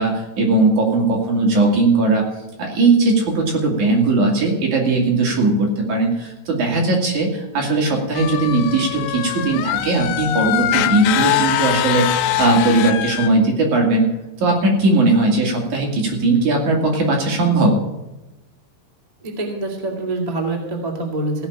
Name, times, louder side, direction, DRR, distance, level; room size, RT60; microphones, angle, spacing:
voice 1, 0.0-2.3 2.6-14.1 14.4-17.8, right 2 dB, 50° right, 0 dB, 3.4 m, -18 dB
sound 1, 8.1-13.3, left 13 dB, 80° left, 2.4 m, -22 dB
voice 2, 19.2-21.5, right 2 dB, 15° right, 0 dB, 1.5 m, -25 dB
16.5 x 5.8 x 8.6 m, 0.99 s
omnidirectional pair, 4.7 m